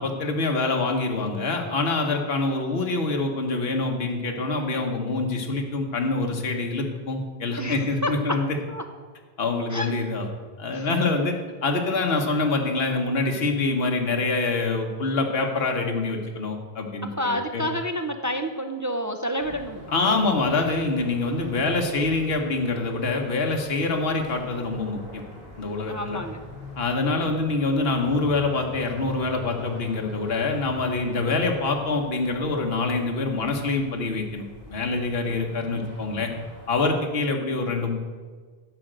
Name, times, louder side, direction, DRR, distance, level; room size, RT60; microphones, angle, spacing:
voice 1, 0.0-8.5 9.4-10.3 10.6-11.4 11.6-17.6 19.9-25.2 25.6-26.2 26.8-34.4 34.7-36.3 36.7-37.9, left 3 dB, 75° left, 2 dB, 1.3 m, -25 dB
voice 2, 7.6-8.4 8.7-8.8 9.7-9.9 10.7-10.9 17.2-19.8 25.9-26.4, equal, 25° right, 5 dB, 0.4 m, -29 dB
sound 1, 19.4-36.9, equal, 60° left, 3.1 m, -44 dB
10.5 x 5.0 x 7.7 m, 1.5 s
omnidirectional pair, 1.0 m